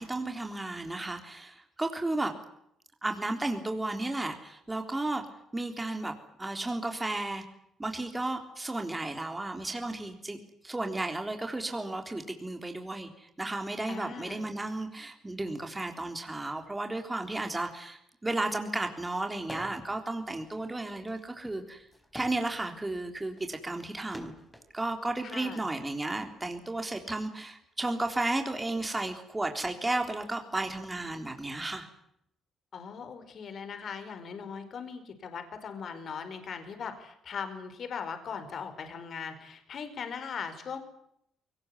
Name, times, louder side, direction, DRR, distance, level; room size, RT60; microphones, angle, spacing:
voice 1, 0.0-2.3 3.0-5.3 5.5-6.1 6.4-7.5 7.8-10.4 10.6-21.9 22.1-24.3 24.7-31.9, right 2 dB, 15° right, 5 dB, 3.5 m, -33 dB
voice 2, 13.9-14.5 25.2-25.6 32.7-40.8, left 6 dB, 55° left, 8 dB, 4.9 m, -39 dB
sound 1, 19.4-20.0 20.3-24.7 25.6-27.2, equal, 5° left, 4.6 m, -48 dB
22.5 x 19.5 x 9.6 m, 0.75 s
cardioid pair, 90°, 0 cm